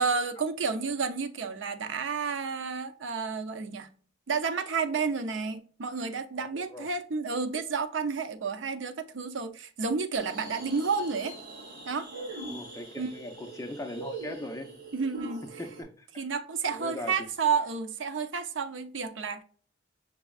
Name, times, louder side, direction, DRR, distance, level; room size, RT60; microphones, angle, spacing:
voice 1, 0.0-3.9 4.3-11.3 11.9-12.1 13.0-13.1 14.9-15.4 16.2-19.4, right 5 dB, 90° right, 0.6 m, -31 dB
voice 2, 6.4-6.9 12.5-14.8 15.6-16.2 16.7-17.1, left 1 dB, 15° left, 0.6 m, -40 dB
sound 1, 10.1-15.8, right 2 dB, 55° right, 2.0 m, -42 dB
6.0 x 3.4 x 2.3 m
head